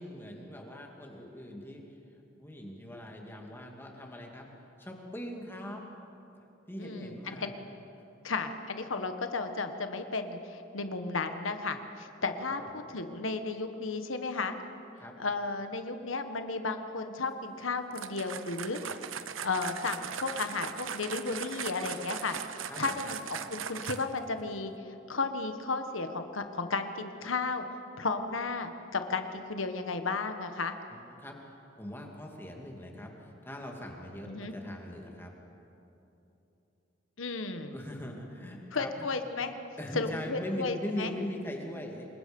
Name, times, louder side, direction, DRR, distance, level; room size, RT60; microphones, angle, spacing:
voice 1, 0.0-1.8 2.4-4.5 4.8-5.8 6.3-7.5 12.5-12.7 15.0-15.1 22.7-23.1 30.9-35.3 37.7-38.9 39.8-42.1, left 1 dB, 10° left, 0 dB, 2.7 m, -41 dB
voice 2, 6.8-7.5 8.2-14.5 15.2-18.8 19.4-22.4 22.8-24.7 25.1-27.6 28.0-30.7 34.2-34.5 37.2-37.7 38.7-39.5 39.9-41.1, left 3 dB, 90° left, 7 dB, 1.4 m, -34 dB
sound 1, 17.9-24.3, right 7 dB, 90° right, 0.9 m, -39 dB
27.0 x 21.5 x 5.4 m, 2.9 s
head